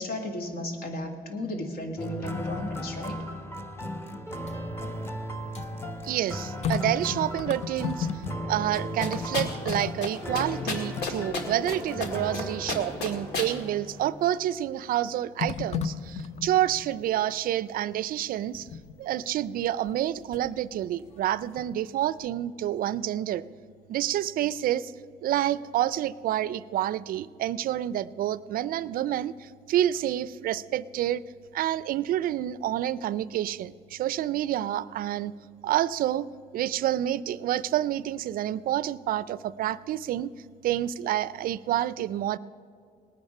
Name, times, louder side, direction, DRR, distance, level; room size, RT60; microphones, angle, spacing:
voice 1, 0.0-3.2, left 1 dB, 70° left, 4 dB, 2.1 m, -34 dB
sound 1, 2.0-14.3, equal, 15° left, 0.9 m, -37 dB
sound 2, 4.3-8.6 8.9-11.7 12.2-12.3 14.0-14.5 15.4-16.9 18.5-19.0 19.9-20.6 21.0-22.0 22.2-22.3, left 6 dB, 40° left, 0.7 m, -35 dB
voice 2, 6.0-8.2 8.5-18.7 19.0-23.4 23.9-24.9 25.2-31.2 31.5-35.3 35.6-36.3 36.5-40.3 40.6-42.4, right 12 dB, 60° right, 18 dB, 0.4 m, -28 dB
sound 3, 9.0-9.8 10.0-10.1 10.3-11.7 12.0-12.4 12.7-13.5, left 3 dB, 85° left, 1.9 m, -31 dB
19.0 x 9.2 x 5.5 m, 2.4 s
cardioid pair, 110°, 17 cm